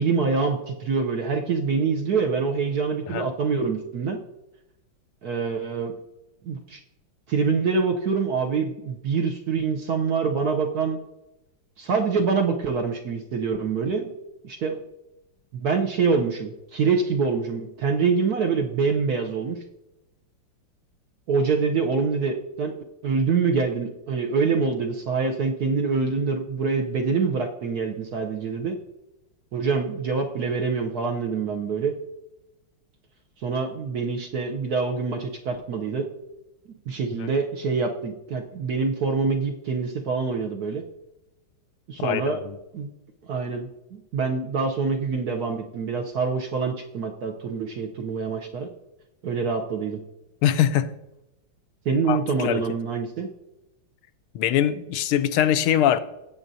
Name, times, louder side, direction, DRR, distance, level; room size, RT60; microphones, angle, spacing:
voice 1, 0.0-4.2 5.2-5.9 6.4-6.8 7.3-11.0 11.8-14.1 14.4-14.8 15.5-19.6 21.3-22.8 23.0-28.8 29.5-31.9 33.4-36.1 36.9-40.8 41.9-42.4 42.7-42.9 43.3-48.7 49.2-50.0 51.8-53.3, right 5 dB, 65° right, 1.0 m, -25 dB
voice 2, 42.0-42.6 50.4-50.9 52.1-52.6 54.3-56.0, left 10 dB, 85° left, 1.5 m, -22 dB
16.0 x 7.8 x 2.7 m
omnidirectional pair, 2.3 m